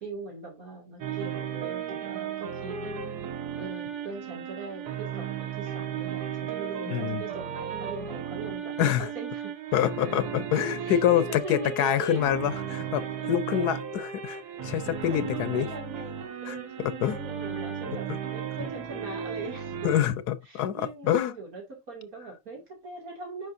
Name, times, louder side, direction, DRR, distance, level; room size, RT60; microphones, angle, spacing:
voice 1, 0.0-3.1 3.6-9.5 10.8-12.4 13.1-13.2 13.5-13.8 15.1-19.7 20.5-23.5, right 3 dB, 65° right, 2.8 m, -41 dB
sound 1, 1.0-20.0, right 8 dB, 85° right, 1.6 m, -35 dB
voice 2, 6.9-7.2 8.8-9.1 9.7-15.7 16.5-17.2 18.1-18.2 19.8-21.3, left 10 dB, 85° left, 1.3 m, -26 dB
9.5 x 5.2 x 2.6 m
omnidirectional pair, 1.6 m